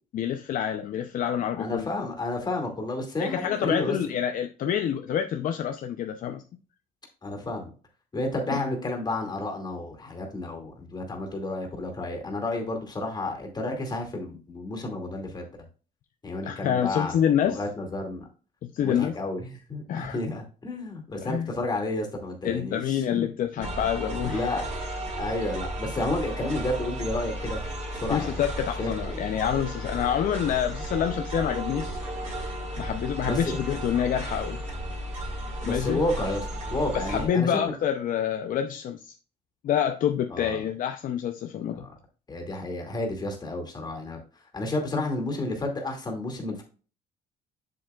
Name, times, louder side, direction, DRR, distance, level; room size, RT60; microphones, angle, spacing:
voice 1, 0.1-1.9 3.2-6.4 8.5-8.6 16.4-17.6 18.6-19.2 19.9-20.2 21.2-21.5 22.4-24.5 28.1-32.0 32.8-34.6 35.6-36.0 36.9-39.1 39.6-41.9, left 9 dB, 55° left, 6 dB, 0.6 m, -27 dB
voice 2, 1.6-4.0 7.2-7.7 8.1-15.5 16.2-17.2 17.4-18.3 18.8-23.3 23.5-23.8 24.3-24.7 25.2-27.6 27.9-28.4 28.8-29.2 33.2-33.5 35.6-37.7 40.3-40.6 41.7-41.9 42.3-44.2 44.5-46.6, left 2 dB, 25° left, 2 dB, 2.3 m, -31 dB
sound 1, 23.6-37.3, right 1 dB, 45° right, 3.8 m, -34 dB
7.6 x 7.1 x 2.4 m, 0.37 s
cardioid pair, 110°, 17 cm